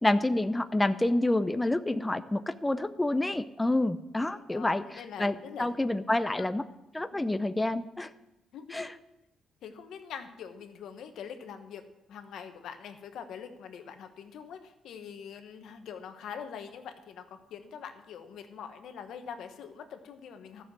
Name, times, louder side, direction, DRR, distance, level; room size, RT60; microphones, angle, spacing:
voice 1, 0.0-4.8 5.2-6.6 6.9-8.1 8.7-8.9, left 1 dB, 10° left, 10 dB, 0.5 m, -28 dB
voice 2, 4.2-5.7 6.4-6.5 7.1-7.3 8.5-8.9 9.6-11.8 12.1-20.6, left 7 dB, 75° left, 7 dB, 1.2 m, -44 dB
12.5 x 6.7 x 7.6 m, 0.96 s
cardioid pair, 90°, 0 cm